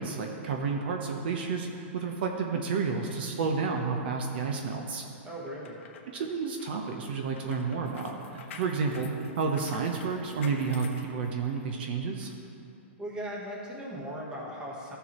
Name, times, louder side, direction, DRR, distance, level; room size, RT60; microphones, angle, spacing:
voice 1, 0.0-5.0 6.1-12.3, right 5 dB, 55° right, 2 dB, 0.8 m, -31 dB
voice 2, 5.2-5.8 13.0-15.0, equal, 10° right, -3 dB, 1.2 m, -38 dB
sound 1, 5.5-11.7 12.2-12.4, left 5 dB, 80° left, 1.1 m, -49 dB
14.5 x 6.9 x 3.0 m, 2.7 s
supercardioid pair, 170°, 7 cm